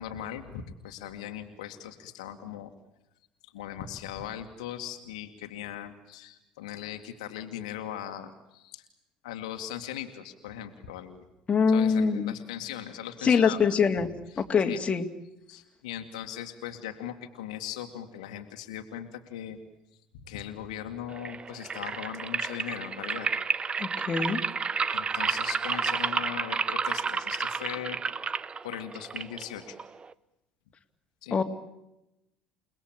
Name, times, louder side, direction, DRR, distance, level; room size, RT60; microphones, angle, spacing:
voice 1, 0.0-2.7 3.4-8.8 9.2-11.2 11.7-14.8 15.5-19.6 20.2-23.3 24.9-28.0 28.6-29.8 31.2-31.4, left 10 dB, 70° left, 6 dB, 2.1 m, -39 dB
voice 2, 11.5-12.3 13.2-14.1 14.4-15.0 23.8-24.4 31.3-31.4, left 6 dB, 30° left, 4 dB, 2.6 m, -24 dB
sound 1, 21.1-30.1, right 5 dB, 25° right, 0.9 m, -31 dB
29.5 x 19.5 x 8.9 m, 0.89 s
figure-of-eight pair, 65°, 4 cm